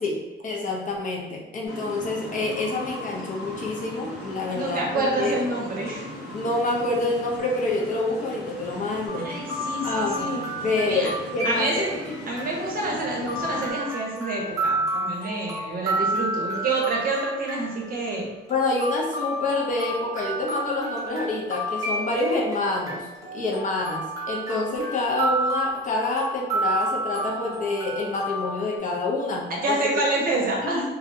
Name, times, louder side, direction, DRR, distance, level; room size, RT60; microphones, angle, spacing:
voice 1, 0.0-5.3 6.3-9.3 9.8-12.2 18.5-29.8 30.6-30.9, left 2 dB, 40° left, -1 dB, 0.5 m, -27 dB
sound 1, 1.6-13.7, left 1 dB, 85° left, 0.9 m, -39 dB
voice 2, 4.5-6.1 9.2-10.5 10.9-11.1 11.4-12.0 12.3-18.3 29.5-30.9, right 2 dB, 45° right, -2 dB, 0.7 m, -27 dB
sound 2, 9.1-28.8, right 1 dB, 15° right, 1.0 m, -31 dB
2.5 x 2.0 x 2.6 m, 1.1 s
cardioid pair, 125°, 21 cm